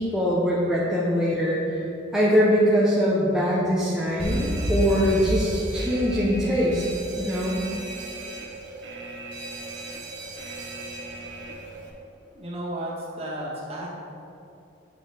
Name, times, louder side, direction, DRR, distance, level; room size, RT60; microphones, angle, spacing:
voice 1, 0.0-1.8 2.1-6.8 7.2-7.6, equal, 5° right, -7 dB, 0.7 m, -22 dB
Alarm, 4.2-11.9, right 1 dB, 65° right, 0.9 m, -33 dB
voice 2, 12.3-13.9, right 1 dB, 30° right, -4 dB, 1.4 m, -33 dB
7.5 x 6.0 x 3.4 m, 2.7 s
head